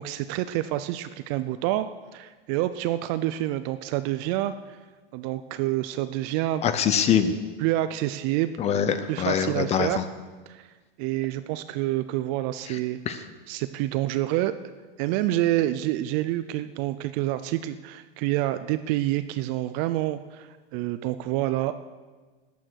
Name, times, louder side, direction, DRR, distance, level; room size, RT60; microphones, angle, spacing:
voice 1, 0.0-1.9 2.1-4.8 5.1-6.6 7.6-8.5 9.1-10.0 10.5-10.7 11.0-14.5 15.0-21.7, right 15 dB, 35° right, 12 dB, 0.4 m, -28 dB
voice 2, 6.6-7.3 8.6-10.0 13.1-13.2, left 8 dB, 20° left, 11 dB, 0.7 m, -23 dB
13.5 x 9.2 x 6.3 m, 1.3 s
supercardioid pair, 150°, 30 cm